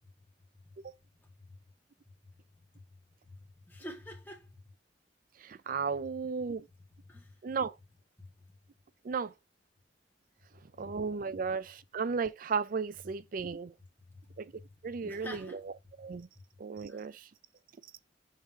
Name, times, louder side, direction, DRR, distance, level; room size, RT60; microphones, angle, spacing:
voice 1, 1.2-1.5 3.3-3.4 3.7-4.6 7.1-7.4 8.2-8.3 10.8-10.9 14.2-14.6 15.0-15.6 16.9-17.1, left 1 dB, 10° left, 2.0 m, -47 dB
voice 2, 5.4-6.7 7.4-7.7 9.0-9.3 10.8-13.7 14.4-14.5 14.8-15.6 16.0-16.3 16.6-17.2, right 5 dB, 50° right, 0.4 m, -34 dB
5.8 x 3.5 x 4.7 m
head